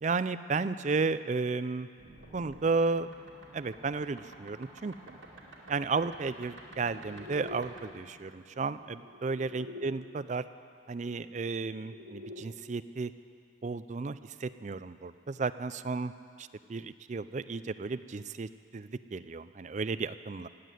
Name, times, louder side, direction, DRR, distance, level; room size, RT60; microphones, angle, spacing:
voice 1, 0.0-1.9 2.3-3.1 3.5-5.2 5.7-10.4 10.9-13.1 13.6-16.1 16.4-20.5, right 4 dB, 40° right, 13 dB, 0.4 m, -33 dB
sound 1, 2.0-9.9 11.2-12.4, left 1 dB, 85° right, 2.4 m, -49 dB
17.0 x 8.3 x 9.1 m, 2.2 s
head